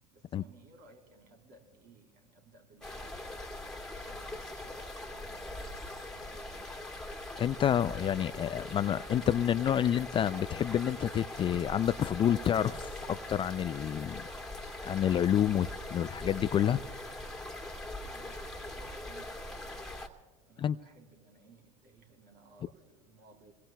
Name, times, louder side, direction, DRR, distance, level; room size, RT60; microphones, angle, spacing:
voice 1, 0.1-3.5 3.9-6.8 18.0-19.8 20.5-23.5, right 3 dB, 55° right, 3.6 m, -60 dB
sound 1, 2.8-20.1, left 1 dB, 5° left, 2.3 m, -42 dB
voice 2, 7.4-14.2 14.8-16.8 20.6-20.8, left 10 dB, 25° left, 0.4 m, -29 dB
27.5 x 22.0 x 2.3 m
hypercardioid pair, 85°, 19 cm